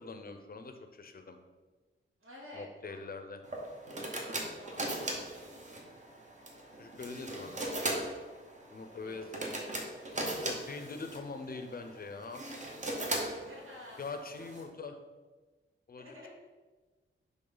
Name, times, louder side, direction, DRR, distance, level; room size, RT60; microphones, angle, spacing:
voice 1, 0.0-1.4 2.5-3.4 6.8-7.6 8.7-9.4 10.0-12.4 14.0-15.0 15.9-16.3, left 4 dB, 45° left, 7 dB, 0.6 m, -43 dB
voice 2, 2.2-3.1 4.4-5.9 8.8-9.7 13.0-14.0 14.4-14.5 16.0-16.3, left 1 dB, 85° right, -4 dB, 2.4 m, -52 dB
sound 1, 3.4-14.6, right 1 dB, 35° right, 1.0 m, -39 dB
10.0 x 3.7 x 3.9 m, 1.3 s
wide cardioid pair, 180°, 21 cm